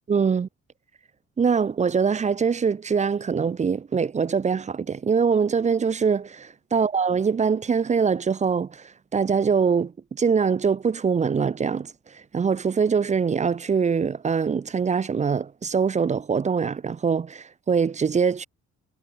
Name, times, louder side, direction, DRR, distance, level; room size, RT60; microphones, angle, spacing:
voice 1, 0.1-0.5 1.4-8.8 9.1-11.9 12.3-18.5, right 6 dB, 25° right, 0.4 m, -23 dB
cardioid pair, 90°, 30 cm